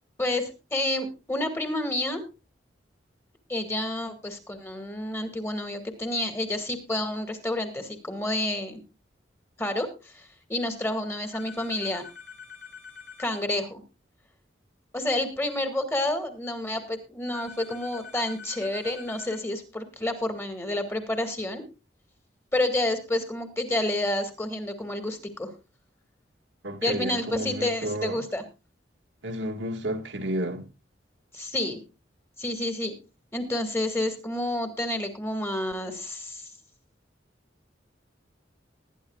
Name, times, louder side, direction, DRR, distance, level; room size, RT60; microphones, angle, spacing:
voice 1, 0.2-2.2 3.5-8.8 9.6-9.9 10.1-12.0 13.2-13.8 14.9-21.6 22.5-25.5 26.8-28.4 31.3-31.8 32.4-32.9 33.3-36.5, left 1 dB, 15° left, 1.9 m, -29 dB
sound 1, 11.3-13.4 17.3-19.4, left 6 dB, 85° left, 3.7 m, -45 dB
voice 2, 26.6-28.3 29.2-30.7, right 1 dB, 80° right, 1.8 m, -31 dB
20.0 x 10.5 x 2.4 m
head